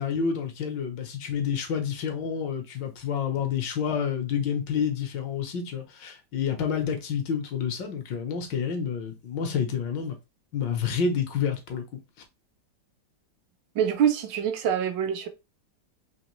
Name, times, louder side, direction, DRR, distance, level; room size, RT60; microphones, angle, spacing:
voice 1, 0.0-10.2 10.5-12.0, left 7 dB, 75° left, 1.6 m, -29 dB
voice 2, 13.7-15.3, right 8 dB, 80° right, 1.5 m, -25 dB
4.1 x 3.0 x 3.0 m
omnidirectional pair, 2.0 m